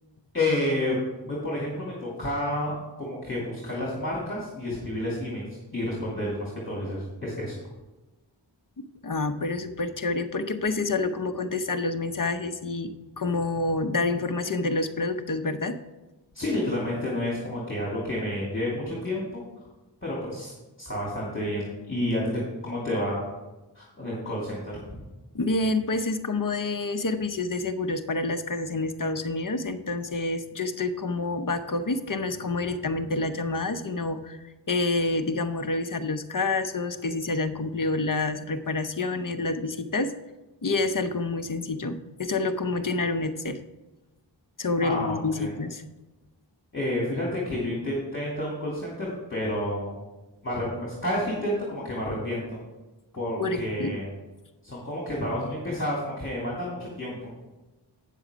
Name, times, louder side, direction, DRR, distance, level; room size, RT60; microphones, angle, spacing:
voice 1, 0.3-1.0 1.2-5.5 5.7-7.5 16.3-19.4 20.0-20.5 20.8-23.3 23.7-25.0 44.8-45.5 46.7-50.0 50.4-52.6 53.1-54.1 54.6-57.4, left 1 dB, 25° left, -5 dB, 2.7 m, -30 dB
voice 2, 8.8-15.7 25.3-40.1 40.6-43.6 44.6-45.8 53.4-54.0, left 3 dB, 45° left, 8 dB, 0.8 m, -28 dB
9.1 x 7.0 x 5.1 m, 1.1 s
wide cardioid pair, 65°, 45 cm